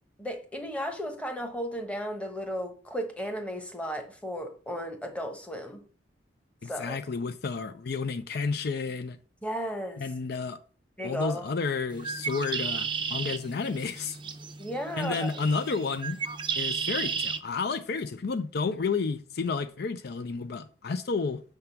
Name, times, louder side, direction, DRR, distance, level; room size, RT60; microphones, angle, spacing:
voice 1, 0.2-5.8 6.6-7.0 9.4-10.0 11.0-11.5 14.6-15.3, equal, 5° left, 1.1 m, -34 dB
voice 2, 6.6-9.2 10.0-10.6 11.0-14.2 15.0-16.2 16.6-21.4, left 4 dB, 60° left, 0.5 m, -31 dB
Bird, 11.9-17.4, right 6 dB, 25° right, 0.5 m, -34 dB
6.7 x 3.7 x 5.7 m
head